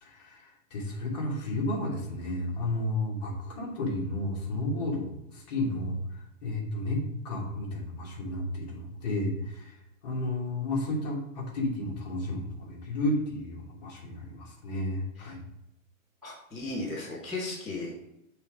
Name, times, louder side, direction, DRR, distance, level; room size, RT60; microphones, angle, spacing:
voice 1, 0.0-6.0 6.4-9.7 10.0-15.4, left 1 dB, 30° left, -2 dB, 1.5 m, -32 dB
voice 2, 16.2-17.9, left 2 dB, ahead, -17 dB, 0.7 m, -36 dB
6.8 x 3.5 x 4.9 m, 0.84 s
hypercardioid pair, 175°, 40 cm